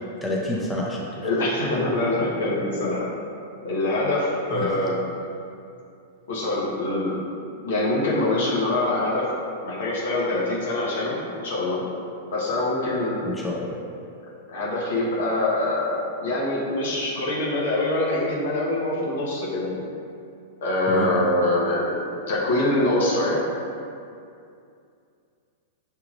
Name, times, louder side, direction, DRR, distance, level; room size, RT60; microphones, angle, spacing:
voice 1, 0.2-1.3 4.5-4.7 13.2-13.8 20.9-21.1, left 1 dB, 10° left, -4 dB, 0.6 m, -28 dB
voice 2, 1.2-3.0 3.6-5.0 6.3-7.2 7.6-9.3 9.6-11.2 11.4-11.8 12.3-13.2 14.5-15.9 16.2-19.7 20.6-23.4, left 2 dB, 70° left, -6 dB, 1.3 m, -24 dB
6.6 x 2.8 x 2.5 m, 2.4 s
hypercardioid pair, 105°, 0 cm